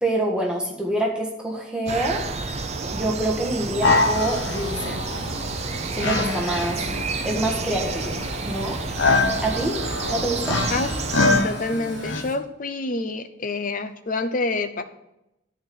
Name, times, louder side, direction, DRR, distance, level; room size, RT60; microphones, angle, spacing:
voice 1, 0.0-2.2 2.9-5.0 5.9-6.8 7.2-8.2 8.5-8.8 9.4-9.8 10.1-10.6, right 1 dB, 5° right, -2 dB, 1.5 m, -26 dB
sound 1, 1.9-11.4, right 4 dB, 35° right, 0.6 m, -30 dB
sound 2, 3.8-12.2, left 3 dB, 65° left, 1.0 m, -25 dB
sound 3, 3.9-12.4, right 2 dB, 65° right, 1.4 m, -41 dB
voice 2, 11.2-14.8, left 2 dB, 45° left, 9 dB, 0.7 m, -27 dB
11.0 x 4.4 x 7.0 m, 0.88 s
head